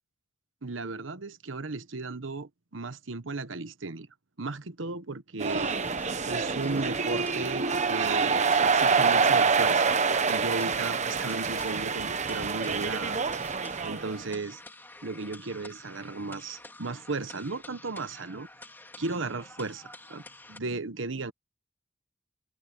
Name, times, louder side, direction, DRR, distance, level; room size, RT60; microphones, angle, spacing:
voice 1, 0.6-4.1 4.4-5.7 6.2-9.9 10.3-13.2 13.8-14.6 15.0-18.5 19.0-20.2 20.5-21.3, right 3 dB, 75° right, 1.1 m, -35 dB
sound 1, 5.4-20.6, left 2 dB, 10° left, 3.1 m, -49 dB
sound 2, 5.4-14.2, right 5 dB, 35° right, 1.1 m, -26 dB
head